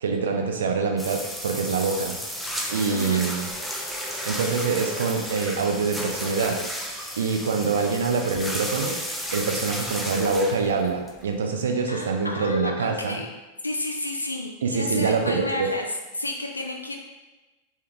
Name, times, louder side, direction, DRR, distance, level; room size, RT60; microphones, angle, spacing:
voice 1, 0.0-2.2 2.7-3.5 4.2-6.6 7.2-9.0 9.3-13.2 14.6-15.7, right 4 dB, 65° right, 3 dB, 0.4 m, -25 dB
sound 1, 1.0-11.4, equal, ahead, 0.4 m, -33 dB
voice 2, 2.9-3.3 11.9-13.3 13.6-15.9 16.2-17.0, left 2 dB, 80° left, 2 dB, 0.4 m, -31 dB
3.3 x 3.2 x 2.3 m, 1.1 s
figure-of-eight pair, 90°, 0 cm